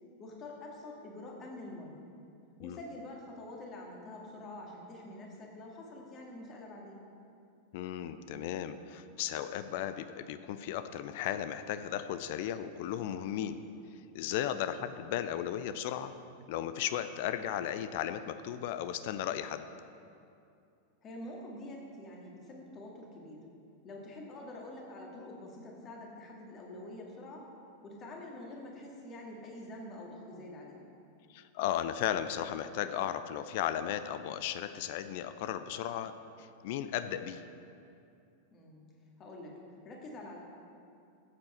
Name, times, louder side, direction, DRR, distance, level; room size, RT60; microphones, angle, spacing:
voice 1, 0.2-2.0 2.6-7.0 21.0-23.4 23.8-27.5 27.8-30.8 38.5-38.8 39.2-39.5 39.8-40.4, left 1 dB, 30° left, -1 dB, 2.1 m, -46 dB
voice 2, 7.7-13.6 14.1-16.1 16.5-19.7 31.3-37.4, left 10 dB, 50° left, 11 dB, 0.5 m, -35 dB
14.0 x 7.9 x 4.4 m, 2.6 s
figure-of-eight pair, 90°, 0 cm